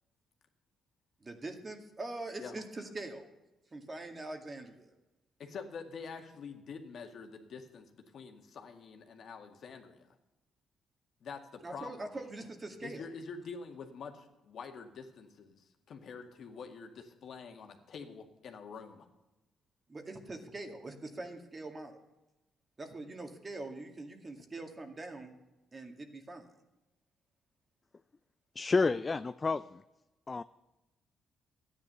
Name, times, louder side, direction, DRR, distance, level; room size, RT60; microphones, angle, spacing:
voice 1, 1.2-3.3 3.7-4.9 11.6-13.0 19.9-22.0 22.8-25.3 25.7-26.5, right 2 dB, 30° right, 5 dB, 2.1 m, -43 dB
voice 2, 5.4-10.1 11.2-12.1 12.8-19.1, left 5 dB, 60° left, 4 dB, 1.9 m, -46 dB
voice 3, 28.6-29.8 30.3-30.4, left 4 dB, 30° left, 13 dB, 0.4 m, -30 dB
13.5 x 9.7 x 6.8 m, 1.0 s
cardioid pair, 90°, 0 cm